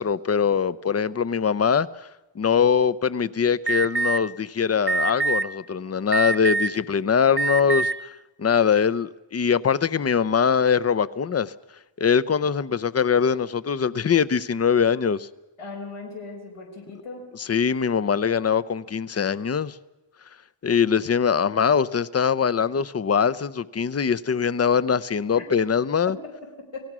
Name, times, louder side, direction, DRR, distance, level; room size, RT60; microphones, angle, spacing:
voice 1, 0.0-2.1 2.4-7.9 8.4-11.5 12.0-15.3 17.3-19.8 20.6-26.2, left 7 dB, 30° left, 0.7 m, -22 dB
Alarm, 3.7-4.2 4.9-5.4 6.1-6.8 7.3-7.9, right 4 dB, 25° right, 0.6 m, -23 dB
voice 2, 15.6-17.3 26.1-26.9, left 3 dB, 90° left, 5.0 m, -38 dB
28.5 x 17.5 x 6.2 m
wide cardioid pair, 110°, 49 cm